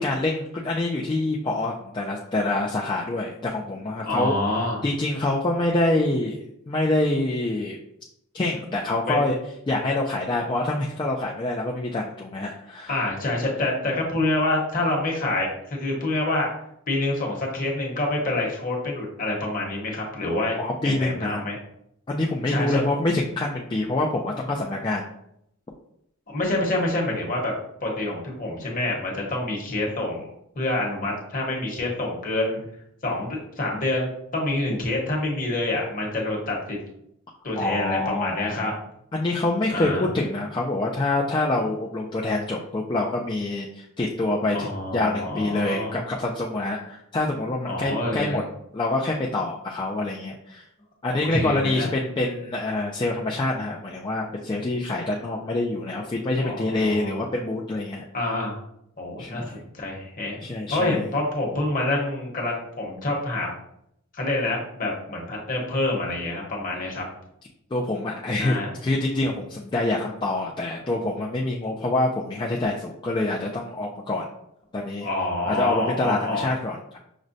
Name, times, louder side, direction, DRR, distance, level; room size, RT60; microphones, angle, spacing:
voice 1, 0.0-4.3 4.8-7.8 8.3-9.3 9.7-13.0 20.6-21.4 22.1-25.1 37.5-38.8 39.1-44.7 44.9-48.4 48.7-50.6 51.0-58.3 59.2-59.6 60.4-61.0 67.7-68.5 68.8-74.2 74.7-75.1 75.5-77.0, left 2 dB, 20° left, -2 dB, 0.3 m, -26 dB
voice 2, 4.0-4.8 9.1-9.3 12.9-16.5 16.9-20.6 20.8-21.6 22.5-22.8 26.3-27.5 27.8-30.3 30.5-32.6 33.0-36.8 37.4-38.7 39.7-40.1 44.5-46.0 47.7-48.4 51.1-51.9 56.4-57.3 58.1-58.6 59.0-60.4 60.7-63.5 64.1-67.0 68.4-68.7 75.0-76.5, left 2 dB, 40° left, -2 dB, 1.0 m, -27 dB
6.1 x 2.1 x 2.6 m, 0.75 s
head